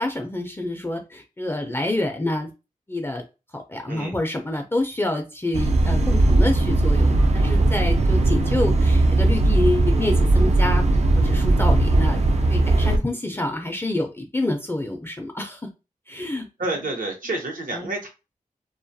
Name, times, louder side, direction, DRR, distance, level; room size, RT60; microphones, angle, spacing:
voice 1, 0.0-2.5 2.9-3.2 3.5-10.8 11.2-12.2 12.5-15.6 16.1-16.9 17.7-17.9, left 1 dB, 15° left, 3 dB, 0.4 m, -27 dB
sound 1, 5.5-13.0, right 2 dB, 50° right, 0.4 m, -18 dB
voice 2, 16.6-18.1, right 2 dB, 70° right, 2 dB, 0.8 m, -29 dB
2.2 x 2.2 x 2.6 m, 0.28 s
cardioid pair, 60°, 14 cm